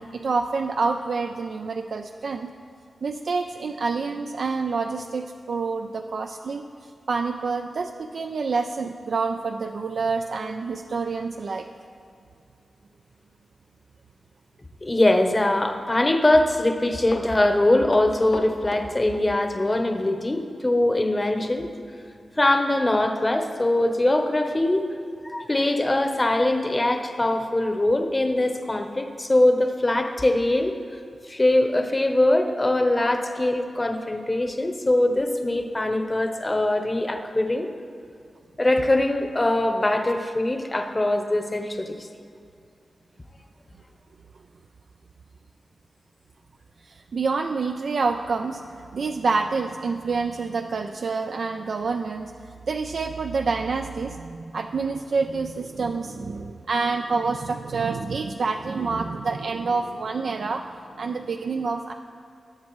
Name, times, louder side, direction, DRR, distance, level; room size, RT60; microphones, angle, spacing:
voice 1, 0.0-2.5 3.0-6.6 7.1-11.7 46.8-52.3 52.7-60.7 61.0-61.9, right 4 dB, 70° right, 5 dB, 0.4 m, -27 dB
voice 2, 14.8-21.7 22.4-24.8 25.2-30.8 31.3-37.7 38.6-42.0, left 1 dB, 25° left, 5 dB, 0.8 m, -22 dB
Run, 17.1-19.7 20.0-20.1 21.4-21.6 21.9-22.0 22.5-22.6 23.0-23.1 23.7-23.8, left 3 dB, 80° left, 0.9 m, -37 dB
19.0 x 7.3 x 3.1 m, 2.3 s
wide cardioid pair, 95°, 0 cm